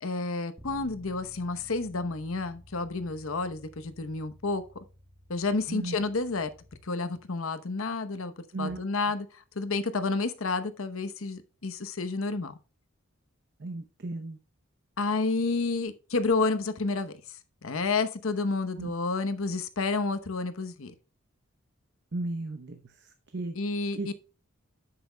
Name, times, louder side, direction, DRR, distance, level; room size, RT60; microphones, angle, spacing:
voice 1, 0.0-4.6 5.3-6.5 6.8-12.6 15.0-20.9 23.5-24.0, left 3 dB, 80° left, 0.9 m, -30 dB
Bass guitar, 0.6-6.8, equal, 20° right, 1.5 m, -53 dB
voice 2, 13.6-14.4 18.8-18.9 22.1-23.6 23.9-24.1, right 2 dB, 55° right, 0.8 m, -35 dB
9.8 x 7.7 x 2.2 m
head